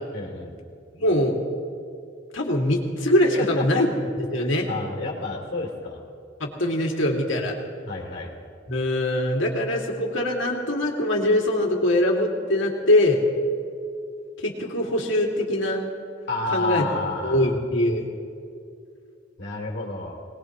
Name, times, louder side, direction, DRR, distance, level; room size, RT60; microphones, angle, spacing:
voice 1, 0.1-0.5 3.4-3.9 4.3-6.0 7.8-8.3 16.3-17.5 19.4-20.2, left 3 dB, 65° left, -2 dB, 2.7 m, -30 dB
voice 2, 1.0-1.4 2.3-3.9 4.3-4.7 6.4-7.5 8.7-13.2 14.4-15.8 16.5-16.8 17.2-18.1, left 1 dB, 80° left, 0 dB, 2.3 m, -22 dB
23.0 x 19.5 x 3.0 m, 2.4 s
head